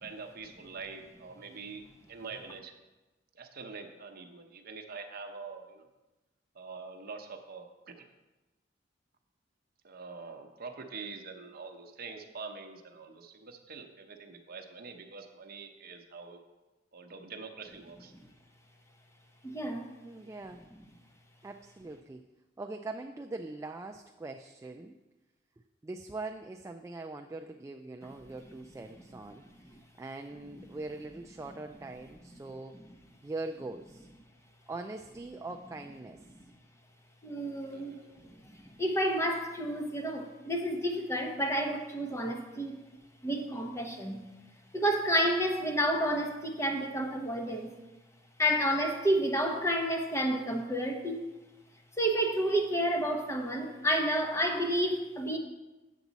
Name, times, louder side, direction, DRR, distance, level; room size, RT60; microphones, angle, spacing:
voice 1, 0.0-2.7 3.3-5.9 6.5-8.1 9.8-16.4 16.9-18.1 37.7-38.4, right 4 dB, 55° right, 5 dB, 0.8 m, -45 dB
voice 2, 19.4-19.9 37.2-38.0 38.2-42.8 43.2-44.2 44.7-47.7 48.4-51.2 52.0-55.4, equal, 15° left, 3 dB, 0.9 m, -30 dB
voice 3, 20.0-20.7 21.4-22.2 22.6-25.0 25.8-32.8 33.2-34.1 34.7-36.2, right 2 dB, 15° right, 4 dB, 0.3 m, -42 dB
8.3 x 7.1 x 4.0 m, 1.1 s
head